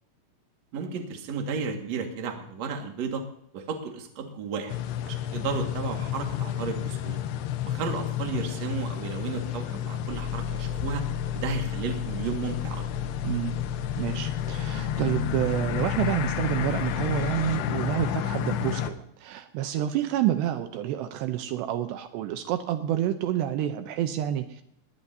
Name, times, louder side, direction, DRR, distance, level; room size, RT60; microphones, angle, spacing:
voice 1, 0.7-3.2 3.5-4.8 5.0-7.2 7.6-11.1 11.3-12.8, right 5 dB, 50° right, 3 dB, 2.5 m, -33 dB
sound 1, 4.7-18.9, left 10 dB, 75° left, 2.8 m, -31 dB
sound 2, 10.1-17.6, left 7 dB, 55° left, 1.5 m, -37 dB
voice 2, 13.2-13.6 14.0-24.6, right 12 dB, 80° right, 8 dB, 2.9 m, -28 dB
21.0 x 18.0 x 2.8 m, 0.73 s
omnidirectional pair, 5.1 m